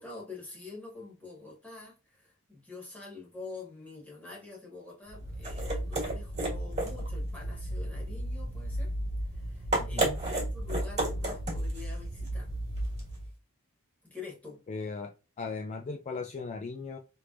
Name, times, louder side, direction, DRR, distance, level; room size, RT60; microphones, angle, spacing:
voice 1, 0.0-8.9 9.3-12.6 14.0-14.6, left 4 dB, 5° left, 1.6 m, -46 dB
sound 1, 5.1-13.3, right 1 dB, 30° right, 1.7 m, -33 dB
voice 2, 14.7-17.0, left 4 dB, 30° left, 0.4 m, -37 dB
3.4 x 3.1 x 2.5 m
head